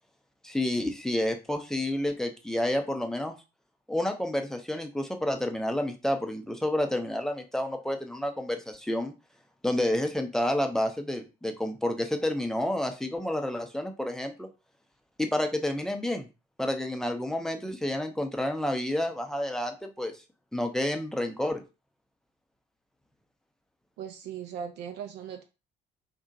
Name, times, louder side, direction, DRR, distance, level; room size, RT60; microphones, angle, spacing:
voice 1, 0.4-3.3 3.9-9.1 9.6-14.5 15.2-16.3 16.6-20.1 20.5-21.6, left 1 dB, ahead, 4 dB, 0.5 m, -29 dB
voice 2, 24.0-25.4, right 8 dB, 55° right, 5 dB, 0.4 m, -38 dB
2.7 x 2.1 x 2.5 m, 0.29 s
figure-of-eight pair, 50°, 21 cm